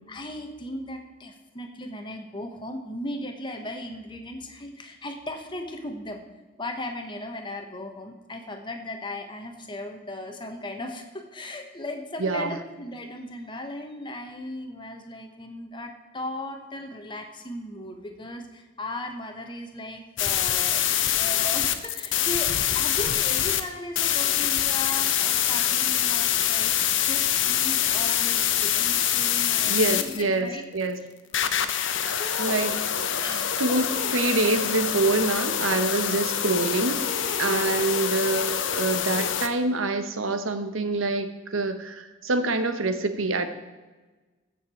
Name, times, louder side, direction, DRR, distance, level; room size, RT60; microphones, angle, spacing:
voice 1, 0.1-6.2 6.6-30.6 31.6-31.8 32.2-32.6 33.2-33.8, left 1 dB, 25° left, 4 dB, 1.2 m, -37 dB
voice 2, 12.2-12.6 29.6-31.0 32.0-32.8 33.2-43.5, right 2 dB, 85° right, 9 dB, 1.1 m, -26 dB
sound 1, 20.2-23.6 24.0-30.2 31.3-39.5, left 10 dB, 65° left, 0.8 m, -25 dB
15.0 x 6.6 x 4.4 m, 1.2 s
head